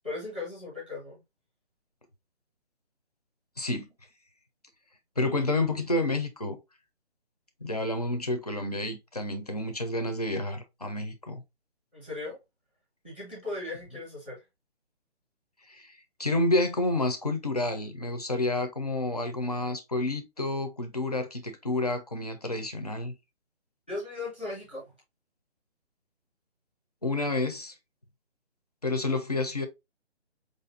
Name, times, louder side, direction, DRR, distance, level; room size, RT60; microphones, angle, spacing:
voice 1, 0.0-1.2 11.9-12.4 13.0-14.4 23.9-24.8, left 2 dB, 10° right, 0.9 m, -37 dB
voice 2, 3.6-3.9 5.2-6.6 7.6-11.4 15.7-23.1 27.0-27.7 28.8-29.7, left 2 dB, 35° left, 0.6 m, -29 dB
4.9 x 2.6 x 2.5 m
hypercardioid pair, 180°, 34 cm